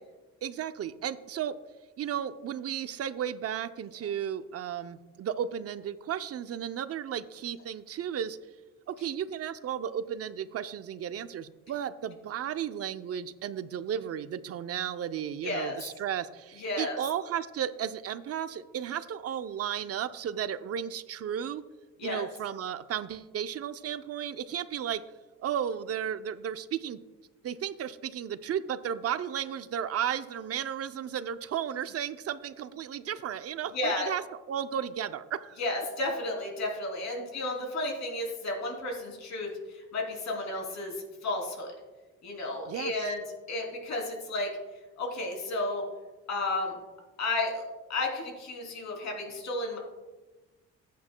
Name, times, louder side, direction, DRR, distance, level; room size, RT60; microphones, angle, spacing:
voice 1, 0.4-1.5 2.0-8.4 8.9-21.6 22.0-25.0 25.4-27.0 27.4-34.2 34.5-35.6 42.7-43.1, right 9 dB, 50° right, 12 dB, 0.6 m, -34 dB
voice 2, 15.4-15.7 16.6-17.0 22.0-22.2 33.7-34.1 35.6-41.7 42.2-43.2 43.5-44.5 45.0-45.8 46.3-46.7 47.2-47.6 47.9-49.8, left 2 dB, 65° left, 0 dB, 3.2 m, -32 dB
15.0 x 8.5 x 2.2 m, 1.2 s
cardioid pair, 90°, 30 cm